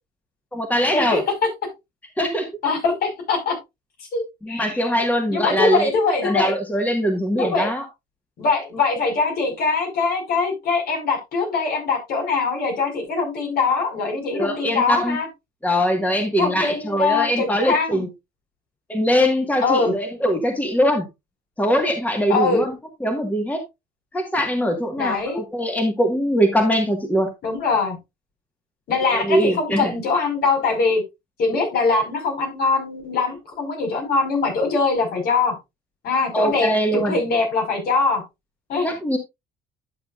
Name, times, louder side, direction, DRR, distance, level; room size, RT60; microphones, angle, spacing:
voice 1, 0.5-1.2 2.2-2.5 4.4-5.9 6.2-7.9 14.3-15.2 15.6-18.1 18.9-21.1 21.6-22.7 23.0-23.6 24.1-27.3 29.1-29.9 36.3-37.2 38.8-39.2, equal, 10° left, 4 dB, 1.7 m, -22 dB
voice 2, 2.6-3.6 4.1-4.7 5.3-6.5 7.4-7.7 8.4-15.3 16.4-18.1 19.6-19.9 22.3-22.6 25.0-25.4 27.4-28.0 28.9-31.0 31.4-35.5 36.0-38.2 38.7-38.9, left 4 dB, 65° left, 2 dB, 5.2 m, -22 dB
11.5 x 7.0 x 2.5 m, 0.21 s
cardioid pair, 110°, 17 cm